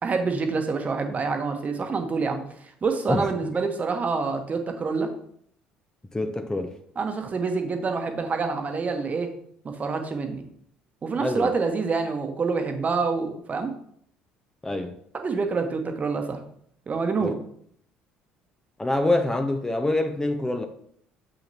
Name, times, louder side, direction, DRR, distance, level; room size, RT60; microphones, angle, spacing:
voice 1, 0.0-2.4 2.8-5.1 7.0-9.3 9.6-10.4 11.0-13.7 15.1-16.4 16.9-17.4, right 4 dB, 35° right, 1.1 m, -27 dB
voice 2, 3.1-3.5 6.1-6.7 11.2-11.5 14.6-14.9 17.2-17.3 18.8-20.7, left 2 dB, 15° left, 0.7 m, -26 dB
7.0 x 6.3 x 2.9 m
hypercardioid pair, 60°, 4 cm